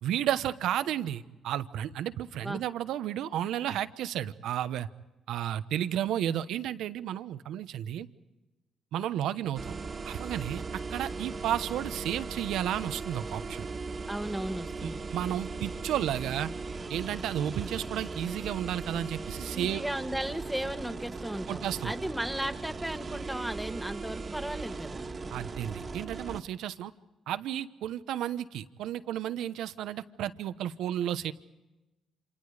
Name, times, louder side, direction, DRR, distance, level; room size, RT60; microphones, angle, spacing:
voice 1, 0.0-4.9 5.3-8.1 8.9-9.7 10.0-10.6 10.9-13.7 14.8-16.5 16.9-19.8 21.5-21.9 25.3-26.9 27.3-31.3, right 11 dB, 85° right, 13 dB, 1.0 m, -32 dB
sound 1, 9.6-26.4, right 4 dB, 35° right, 1.9 m, -38 dB
voice 2, 14.1-15.1 19.5-25.1, right 1 dB, 5° right, 7 dB, 1.7 m, -35 dB
29.5 x 27.5 x 5.0 m, 1.0 s
cardioid pair, 90°, 0 cm